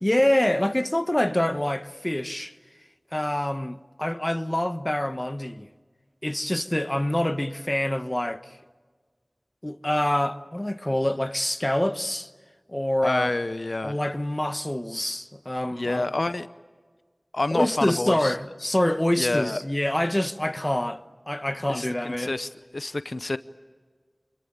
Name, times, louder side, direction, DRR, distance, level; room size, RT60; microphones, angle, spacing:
voice 1, 0.0-2.6 3.1-5.7 6.2-8.6 9.6-12.3 12.7-13.3 13.8-16.1 17.5-22.3, left 1 dB, 25° left, 1.1 m, -26 dB
voice 2, 13.0-14.0 15.8-16.5 17.3-18.3 19.2-19.6 21.7-22.5 22.7-23.4, left 2 dB, 70° left, 0.7 m, -28 dB
28.0 x 22.0 x 8.8 m
wide cardioid pair, 50°, 0 cm